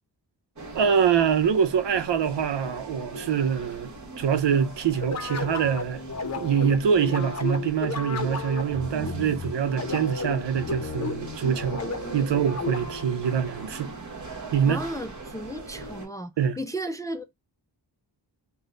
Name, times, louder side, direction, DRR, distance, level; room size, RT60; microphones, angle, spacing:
sound 1, 0.6-16.1, right 3 dB, 45° right, 1.3 m, -41 dB
voice 1, 0.7-6.0 6.4-11.8 12.1-13.9 14.5-14.8 16.4-16.6, right 7 dB, 80° right, 0.7 m, -24 dB
sound 2, 5.0-13.1, left 3 dB, 40° left, 0.7 m, -33 dB
voice 2, 14.6-17.2, right 1 dB, 10° left, 0.3 m, -34 dB
3.9 x 2.2 x 3.7 m
wide cardioid pair, 115°, 42 cm